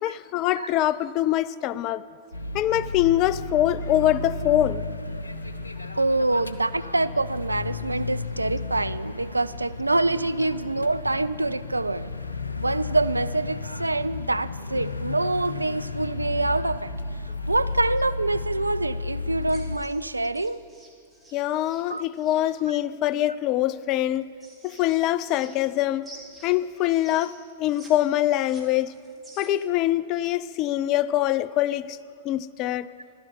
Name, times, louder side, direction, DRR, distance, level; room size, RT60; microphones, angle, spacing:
voice 1, 0.0-2.0 2.5-4.8 21.3-24.3 24.6-26.1 26.4-28.9 29.4-32.0 32.2-32.9, left 13 dB, 35° left, 0.4 m, -24 dB
sound 1, 2.3-19.8, left 3 dB, 80° left, 0.6 m, -33 dB
voice 2, 6.0-12.1 12.6-16.9 17.5-20.6 21.9-22.0, right 2 dB, 85° right, 0.4 m, -26 dB
sound 2, 19.4-22.4 23.9-25.7 26.0-27.9 28.2-29.7, right 2 dB, ahead, 2.6 m, -49 dB
14.5 x 12.0 x 6.0 m
figure-of-eight pair, 100°, 0 cm